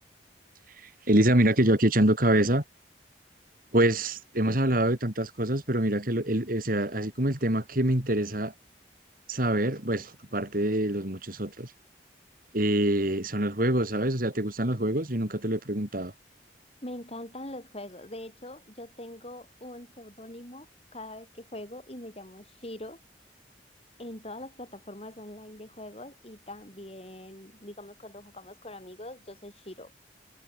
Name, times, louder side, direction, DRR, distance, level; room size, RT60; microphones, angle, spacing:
voice 1, 1.1-2.6 3.7-8.5 9.3-11.7 12.5-16.1, right 1 dB, 50° right, 3.5 m, -25 dB
voice 2, 16.8-20.7 20.9-23.0 24.0-29.9, left 1 dB, 35° left, 5.7 m, -43 dB
head